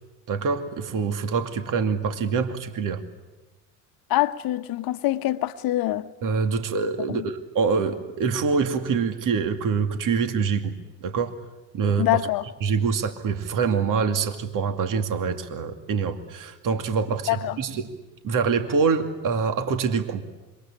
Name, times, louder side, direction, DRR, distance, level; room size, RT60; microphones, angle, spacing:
voice 1, 0.3-3.0 6.2-10.7 11.0-11.4 11.7-12.1 12.6-17.9 18.2-20.2, right 5 dB, 50° right, 2.5 m, -25 dB
voice 2, 4.1-6.1 7.1-7.3 12.0-12.4 17.3-17.6, left 15 dB, 60° left, 1.2 m, -24 dB
26.5 x 24.5 x 8.7 m
hypercardioid pair, 75°, 41 cm